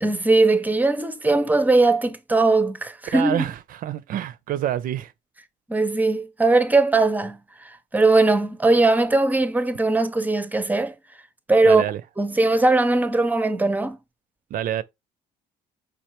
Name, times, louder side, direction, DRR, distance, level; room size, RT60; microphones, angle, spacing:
voice 1, 0.0-3.4 5.7-10.9 11.5-11.8 12.2-14.0, right 3 dB, 10° right, 0.5 m, -20 dB
voice 2, 3.1-5.1 11.6-12.0 14.5-14.8, right 11 dB, 55° right, 0.4 m, -27 dB
5.3 x 3.2 x 2.9 m
cardioid pair, 110°, 17 cm